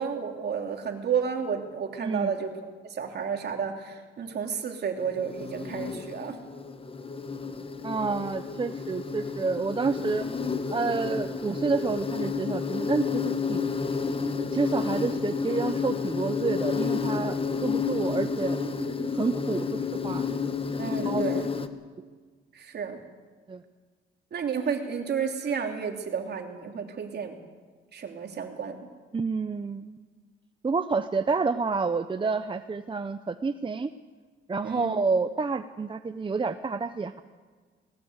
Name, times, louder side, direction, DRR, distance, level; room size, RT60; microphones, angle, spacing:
voice 1, 0.0-6.4 20.8-21.5 22.5-23.0 24.3-27.4 27.9-28.8 34.6-35.0, right 6 dB, 55° right, 3 dB, 3.0 m, -31 dB
Insect, 5.0-21.7, left 5 dB, 25° left, 1.4 m, -31 dB
voice 2, 7.8-10.3 10.7-13.7 14.5-18.6 19.1-19.8 20.0-20.2 21.0-21.2 23.5-23.6 29.1-30.0 30.6-33.9 34.5-37.2, right 4 dB, 25° right, 9 dB, 0.8 m, -29 dB
19.0 x 18.0 x 8.1 m, 1.5 s
cardioid pair, 90°, 20 cm